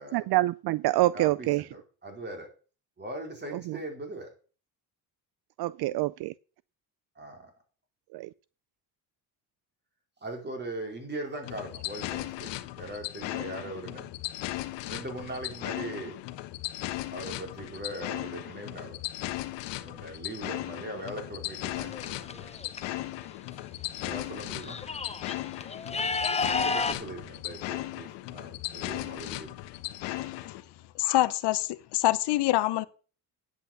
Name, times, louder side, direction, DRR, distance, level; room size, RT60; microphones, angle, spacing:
voice 1, 0.1-1.6 3.7-3.8 5.6-6.3 8.1-8.3, right 17 dB, 65° right, 0.5 m, -26 dB
voice 2, 1.1-2.5 3.0-4.3 7.1-7.5 10.2-14.1 14.9-16.2 17.1-19.1 19.7-22.5 24.0-24.8 26.6-29.5, right 1 dB, 25° right, 4.6 m, -40 dB
sound 1, 11.4-30.6, left 16 dB, 90° left, 1.1 m, -37 dB
sound 2, 21.7-22.8 24.0-24.1 24.4-26.9, left 4 dB, 15° left, 0.9 m, -31 dB
voice 3, 31.0-32.9, left 16 dB, 70° left, 0.9 m, -25 dB
10.5 x 8.4 x 6.7 m
cardioid pair, 115°, 42 cm